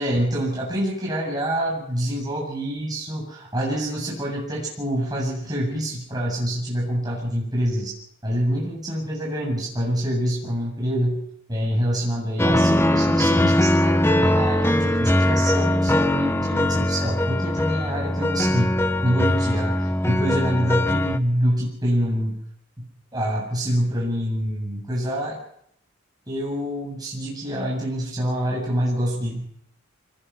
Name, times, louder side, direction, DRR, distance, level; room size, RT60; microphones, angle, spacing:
voice 1, 0.0-7.9 8.2-22.4 22.8-22.9 23.1-25.4 26.3-29.5, equal, 20° right, -4 dB, 7.7 m, -26 dB
sound 1, 12.4-21.2, left 1 dB, 10° left, 1.0 m, -21 dB
27.0 x 20.5 x 5.8 m, 0.69 s
head